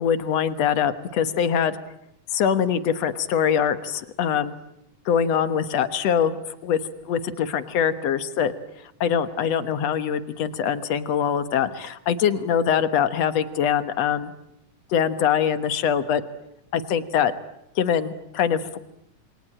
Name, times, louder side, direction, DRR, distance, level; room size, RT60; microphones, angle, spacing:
voice 1, 0.0-1.8 2.3-4.5 5.1-6.3 6.6-6.8 7.1-8.5 9.0-14.3 14.9-16.2 16.7-17.3 17.8-18.8, left 8 dB, 60° left, 12 dB, 2.1 m, -23 dB
28.0 x 23.5 x 8.9 m, 0.78 s
omnidirectional pair, 3.7 m